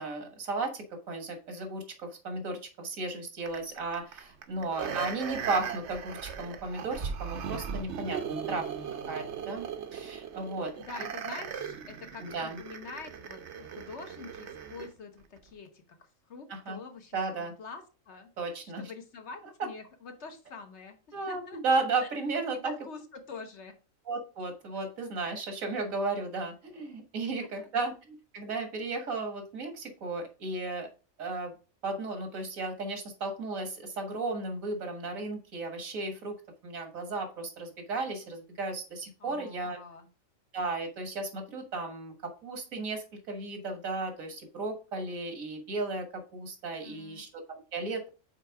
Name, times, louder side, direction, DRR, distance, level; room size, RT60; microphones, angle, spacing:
voice 1, 0.0-8.7 9.1-9.7 9.9-10.7 11.0-11.1 12.2-12.6 16.5-16.8 17.1-17.5 18.4-18.8 21.1-22.7 24.1-30.9 31.2-31.5 31.8-36.3 36.6-39.8 40.5-46.1 46.3-48.1, right 3 dB, 85° right, 5 dB, 1.9 m, -34 dB
sound 1, 3.5-14.9 15.4-15.5, right 7 dB, 65° right, 1.0 m, -38 dB
voice 2, 4.5-5.3 10.7-16.0 16.3-18.3 18.8-21.0 21.3-21.6 22.0-22.1 22.6-23.8 27.6-27.9 39.2-40.1 46.8-47.2, left 4 dB, 60° left, 6 dB, 1.2 m, -46 dB
5.7 x 4.3 x 4.6 m, 0.34 s
omnidirectional pair, 1.4 m